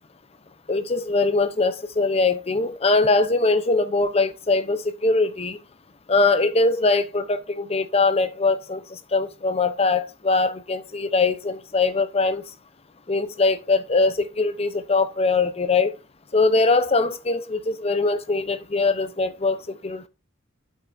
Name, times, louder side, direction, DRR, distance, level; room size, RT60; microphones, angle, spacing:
voice 1, 0.7-5.6 6.1-12.4 13.1-15.9 16.3-20.1, left 3 dB, 30° left, 0.7 m, -22 dB
8.4 x 7.7 x 2.6 m
head